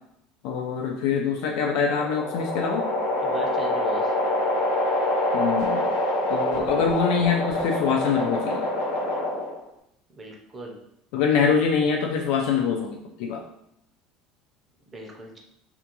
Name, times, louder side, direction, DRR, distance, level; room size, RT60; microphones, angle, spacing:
voice 1, 0.4-2.8 5.3-5.9 6.3-8.6 11.1-13.4, left 6 dB, 70° left, 1 dB, 0.3 m, -24 dB
sound 1, 1.4-9.7, left 1 dB, 90° left, 0.7 m, -26 dB
voice 2, 3.2-4.1 10.1-10.8 14.9-15.4, right 2 dB, 15° right, -1 dB, 0.4 m, -38 dB
2.4 x 2.2 x 2.8 m, 0.76 s
cardioid pair, 160°, 0 cm